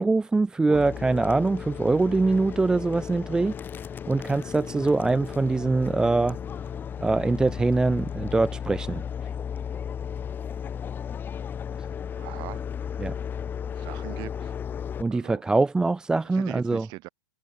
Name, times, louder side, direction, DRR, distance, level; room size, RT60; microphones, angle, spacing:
voice 1, 0.0-3.5 4.1-6.4 7.0-9.0 13.0-13.1 15.0-16.9, right 3 dB, 5° right, 0.4 m, -23 dB
sound 1, 0.7-15.0, left 8 dB, 20° left, 1.0 m, -35 dB
voice 2, 12.1-12.6 13.8-14.5 15.1-15.4 16.3-17.1, right 22 dB, 40° right, 7.7 m, -40 dB
figure-of-eight pair, 100°, 11 cm